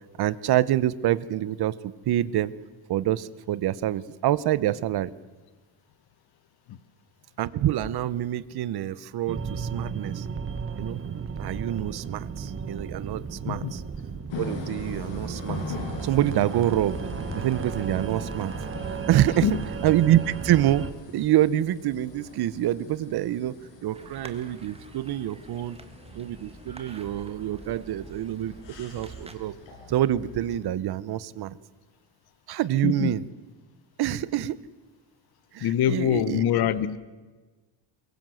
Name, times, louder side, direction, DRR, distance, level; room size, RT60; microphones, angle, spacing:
voice 1, 0.2-2.5 2.9-5.1 7.4-10.3 10.8-11.0 11.4-13.8 14.3-15.6 16.0-17.0 17.4-18.5 19.1-19.6 19.8-23.6 23.8-25.8 26.1-29.5 29.9-31.6 32.5-33.2 34.0-34.6 35.5-36.4, right 12 dB, 60° right, 0.8 m, -26 dB
sound 1, 9.3-20.9, right 6 dB, 30° right, 1.3 m, -34 dB
sound 2, 14.3-30.6, left 4 dB, 90° left, 5.7 m, -42 dB
sound 3, 23.9-29.4, right 3 dB, 15° right, 1.6 m, -47 dB
voice 2, 32.8-33.1 35.6-37.0, left 10 dB, 55° left, 1.0 m, -24 dB
24.0 x 22.5 x 7.7 m
cardioid pair, 170°, 44 cm